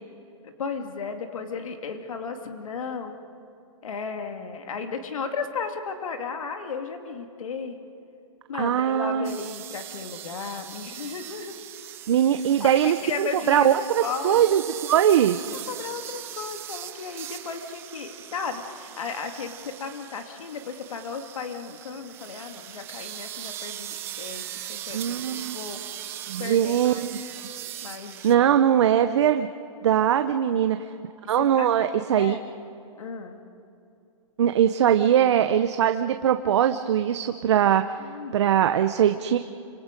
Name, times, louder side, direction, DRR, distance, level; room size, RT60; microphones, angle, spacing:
voice 1, 0.4-3.2 3.8-7.8 8.5-11.5 12.7-13.7 14.0-14.4 15.7-25.8 26.4-27.2 27.8-28.5 29.9-30.1 31.4-32.4 33.0-33.4 38.0-38.4, left 5 dB, 90° left, 5 dB, 2.3 m, -35 dB
voice 2, 8.5-9.4 12.1-15.4 24.9-25.6 26.3-27.1 28.2-29.5 29.8-30.8 31.3-32.4 34.4-37.8 38.3-39.4, right 10 dB, 55° right, 9 dB, 0.8 m, -21 dB
sound 1, 9.2-28.4, right 12 dB, 15° right, 0.5 m, -40 dB
29.5 x 26.0 x 5.2 m, 2.6 s
hypercardioid pair, 170°, 17 cm